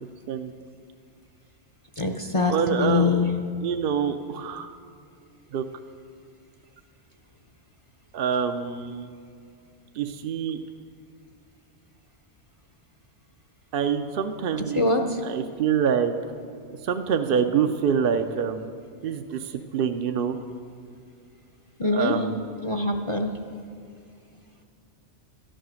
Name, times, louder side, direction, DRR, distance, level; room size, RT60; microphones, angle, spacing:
voice 1, 2.0-3.3 14.7-15.2 21.8-22.1 22.6-23.3, left 3 dB, 35° left, 3 dB, 0.6 m, -23 dB
voice 2, 2.5-3.2 3.6-4.7 5.5-5.6 8.1-9.1 9.9-10.6 13.7-14.8 15.2-16.1 16.7-18.7 19.0-20.4 21.8-22.5, right 7 dB, 60° right, 6 dB, 0.7 m, -26 dB
12.5 x 10.0 x 6.3 m, 2.4 s
omnidirectional pair, 1.2 m